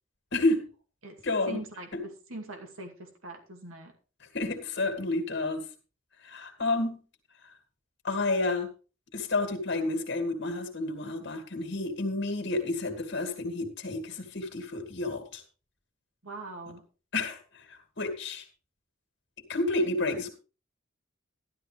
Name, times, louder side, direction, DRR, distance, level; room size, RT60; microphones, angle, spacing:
voice 1, 0.3-0.6 1.2-1.6 1.9-2.0 4.3-5.6 6.2-7.0 8.0-8.7 9.1-15.4 17.1-17.4 17.7-18.5 19.5-20.3, left 2 dB, 55° left, 6 dB, 2.5 m, -30 dB
voice 2, 1.5-3.9 16.2-16.8, right 2 dB, 90° right, 3 dB, 2.5 m, -42 dB
12.5 x 12.5 x 3.4 m, 0.34 s
head